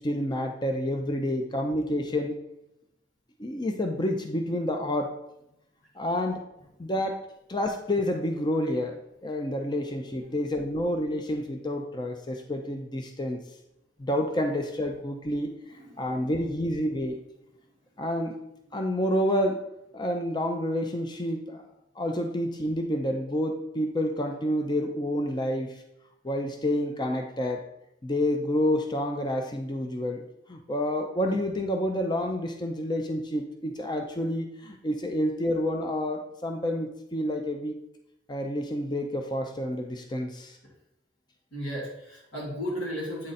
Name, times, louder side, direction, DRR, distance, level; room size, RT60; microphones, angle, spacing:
voice 1, 0.0-2.3 3.4-5.1 6.0-6.4 6.8-7.2 7.5-9.0 9.2-13.4 14.0-15.5 16.0-17.2 18.0-18.3 18.7-19.6 19.9-21.6 22.0-25.7 26.2-27.6 28.0-30.2 30.5-37.7 38.3-40.5, left 1 dB, 25° left, 4 dB, 0.5 m, -29 dB
voice 2, 15.7-16.3 41.5-43.3, equal, 65° left, -5 dB, 2.2 m, -35 dB
8.5 x 3.8 x 4.1 m, 0.84 s
head